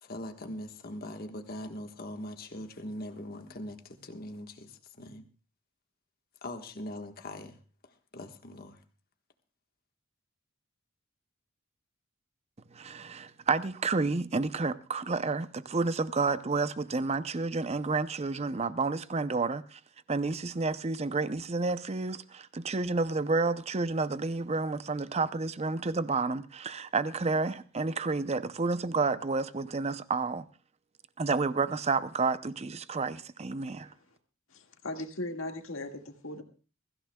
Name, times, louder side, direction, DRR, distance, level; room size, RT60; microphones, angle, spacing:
voice 1, 0.0-5.2 6.4-7.6 7.8-8.8, left 1 dB, 45° left, 1.4 m, -41 dB
voice 2, 12.7-19.8 20.1-30.5 31.2-33.9, right 3 dB, 30° right, 0.6 m, -30 dB
voice 3, 34.5-36.4, left 1 dB, 70° left, 1.9 m, -38 dB
22.5 x 15.0 x 2.3 m
head